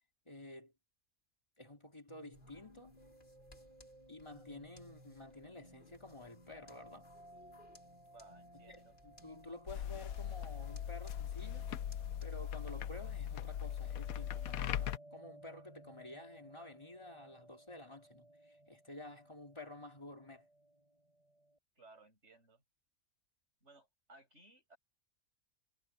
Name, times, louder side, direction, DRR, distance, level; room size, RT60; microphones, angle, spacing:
voice 1, 0.3-0.7 1.6-2.9 4.1-7.1 8.7-11.7 12.2-20.5, left 2 dB, 20° left, 2.9 m, -51 dB
sound 1, 2.1-21.6, right 1 dB, 25° right, 8.1 m, -60 dB
sound 2, 2.3-13.6, left 2 dB, 35° left, 3.7 m, -65 dB
voice 2, 8.1-8.9 21.8-22.6 23.6-24.8, right 2 dB, 55° right, 6.6 m, -61 dB
sound 3, 9.7-15.0, left 10 dB, 85° left, 1.2 m, -40 dB
omnidirectional pair, 1.5 m